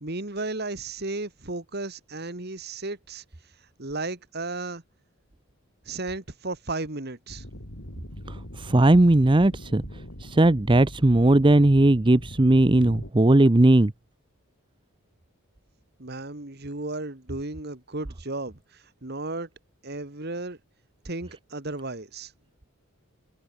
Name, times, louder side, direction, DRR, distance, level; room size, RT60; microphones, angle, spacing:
voice 1, 0.0-3.2 3.8-4.8 5.9-7.4 16.0-19.5 19.8-20.6 21.0-22.3, right 2 dB, 45° right, 1.9 m, -34 dB
sound 1, 7.3-13.1, equal, 60° left, 7.0 m, -42 dB
voice 2, 8.3-9.8 10.2-13.9, right 1 dB, 20° right, 0.6 m, -18 dB
head